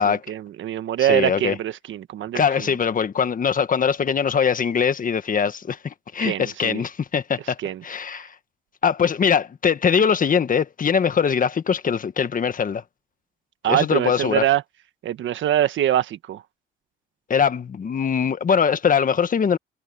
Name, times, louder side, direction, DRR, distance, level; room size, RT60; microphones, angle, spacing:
voice 1, 0.0-2.7 6.2-6.8 7.6-7.8 13.6-14.6 15.0-16.4, right 12 dB, 75° right, 1.5 m, -24 dB
voice 2, 1.0-1.6 2.3-7.6 7.8-8.3 8.8-12.8 13.7-14.4 17.3-19.6, left 7 dB, 45° left, 1.5 m, -22 dB
cardioid pair, 90°, 20 cm